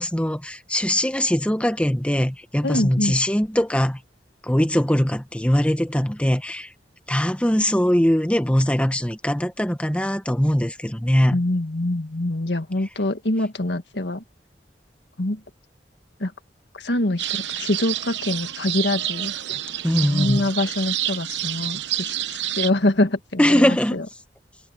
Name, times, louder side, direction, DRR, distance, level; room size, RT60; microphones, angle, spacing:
voice 1, 0.0-4.0 4.4-6.7 7.1-11.4 19.8-20.5 23.4-24.0, equal, 5° left, 1.1 m, -21 dB
voice 2, 2.6-3.2 11.3-14.2 15.2-15.4 16.2-16.3 16.7-19.6 20.0-24.1, left 1 dB, 75° left, 1.8 m, -25 dB
sound 1, 17.2-22.7, right 13 dB, 85° right, 0.9 m, -28 dB
head